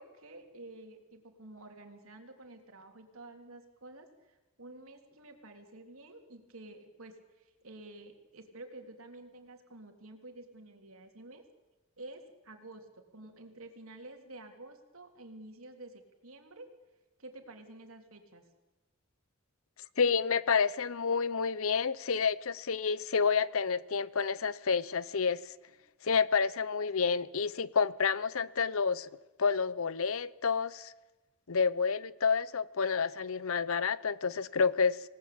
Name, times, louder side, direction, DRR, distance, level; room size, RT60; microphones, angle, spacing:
voice 1, 0.0-11.4 12.0-16.7 17.2-18.4 26.0-26.2, right 2 dB, 75° right, 3.3 m, -50 dB
voice 2, 20.0-25.5 26.0-29.1 29.4-30.9 31.5-35.0, left 5 dB, 75° left, 0.8 m, -29 dB
26.5 x 18.5 x 8.6 m
head